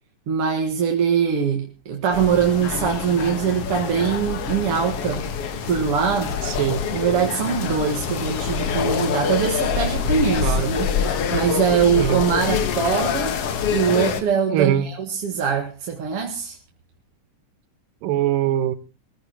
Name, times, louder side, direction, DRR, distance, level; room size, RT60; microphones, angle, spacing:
voice 1, 0.3-5.2 5.6-6.3 6.9-13.4 13.7-16.6, right 7 dB, 50° right, 2 dB, 2.2 m, -22 dB
sound 1, 2.1-14.2, left 6 dB, 55° left, 2.0 m, -25 dB
voice 2, 6.4-6.8 10.4-10.7 12.0-12.3 14.5-14.9 18.0-18.8, right 11 dB, 85° right, 12 dB, 2.8 m, -22 dB
21.0 x 15.0 x 2.9 m, 0.30 s
omnidirectional pair, 3.8 m